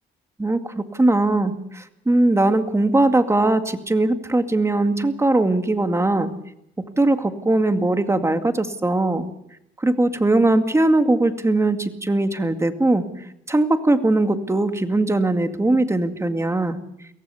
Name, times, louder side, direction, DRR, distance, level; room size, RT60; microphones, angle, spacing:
voice 1, 0.4-6.3 6.8-9.3 9.8-13.1 13.5-16.8, right 2 dB, 15° right, 8 dB, 2.2 m, -20 dB
23.5 x 17.0 x 7.0 m, 0.79 s
cardioid pair, 90°, 20 cm